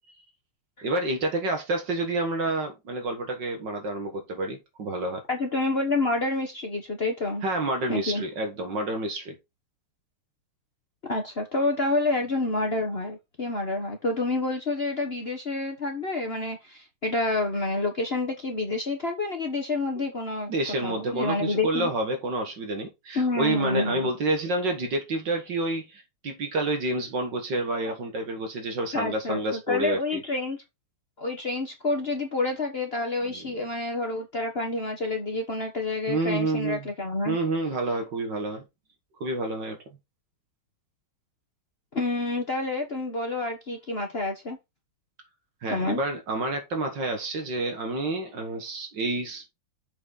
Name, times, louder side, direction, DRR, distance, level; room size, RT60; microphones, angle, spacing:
voice 1, 0.8-5.2 7.4-9.4 20.0-20.1 20.5-30.2 33.3-33.5 36.1-36.9 37.2-38.6 39.2-39.8 45.6-49.4, right 2 dB, 60° right, 2.1 m, -29 dB
voice 2, 5.3-7.4 7.9-8.2 11.1-20.5 20.8-21.9 23.1-24.1 28.9-30.6 31.2-37.4 41.9-44.6 45.7-46.0, left 2 dB, 35° left, 1.1 m, -28 dB
7.0 x 5.8 x 4.0 m
omnidirectional pair, 2.3 m